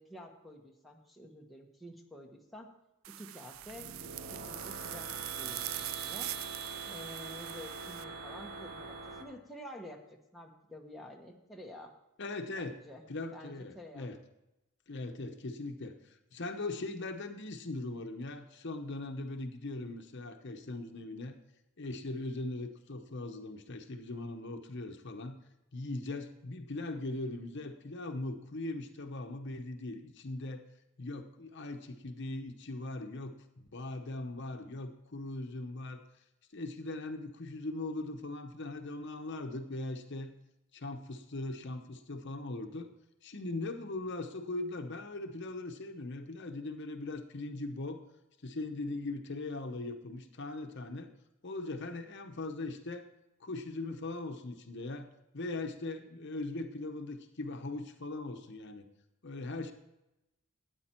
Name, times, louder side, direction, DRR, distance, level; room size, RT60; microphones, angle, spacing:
voice 1, 0.0-2.7 3.1-3.9 4.3-6.3 6.8-11.9 12.6-13.0 13.3-14.1, equal, ahead, -1 dB, 1.1 m, -49 dB
sound 1, 3.0-8.0, right 15 dB, 70° right, 0.4 m, -42 dB
sound 2, 3.5-9.2, right 4 dB, 50° right, 1.8 m, -43 dB
voice 2, 12.2-12.8 13.1-14.2 14.9-21.3 21.8-25.4 25.7-30.6 31.0-36.0 36.5-40.3 40.7-42.9 43.2-48.0 48.4-51.1 51.4-53.1 53.4-55.1 55.3-58.9 59.2-59.7, left 2 dB, 55° left, 6 dB, 0.9 m, -40 dB
13.0 x 9.1 x 4.4 m, 0.93 s
head